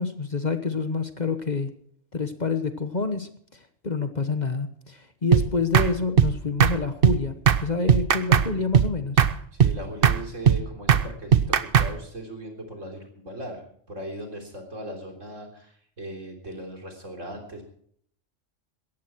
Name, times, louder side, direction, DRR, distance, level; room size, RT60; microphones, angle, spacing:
voice 1, 0.0-1.7 2.1-3.3 3.8-9.2, left 4 dB, 35° left, 9 dB, 1.1 m, -27 dB
sound 1, 5.3-5.5 5.7-5.9 6.2-6.3 6.6-6.8 7.0-7.2 7.5-7.6 7.9-8.5 8.7-8.9 9.2-9.3 9.6-9.8 10.0-10.2 10.5-10.6 10.9-11.0 11.3-11.9, right 8 dB, 50° right, 0.9 m, -17 dB
voice 2, 9.5-13.6 13.9-17.6, right 1 dB, 75° right, 2 dB, 3.9 m, -38 dB
18.0 x 14.0 x 4.5 m, 0.63 s
omnidirectional pair, 1.3 m